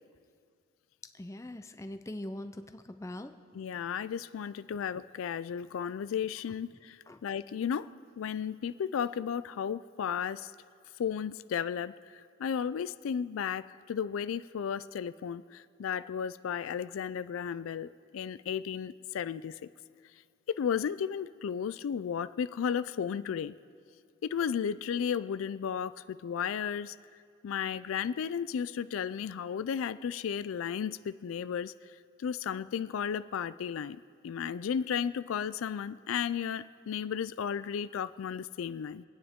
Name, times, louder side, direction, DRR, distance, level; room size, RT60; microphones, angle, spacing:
voice 1, 1.1-3.3 7.1-7.2, left 1 dB, 15° left, 8 dB, 0.5 m, -42 dB
voice 2, 3.5-10.5 11.0-19.5 20.5-23.5 24.2-26.9 27.4-31.7 32.2-39.0, left 7 dB, 90° left, 15 dB, 0.3 m, -34 dB
25.0 x 9.4 x 3.6 m, 2.2 s
head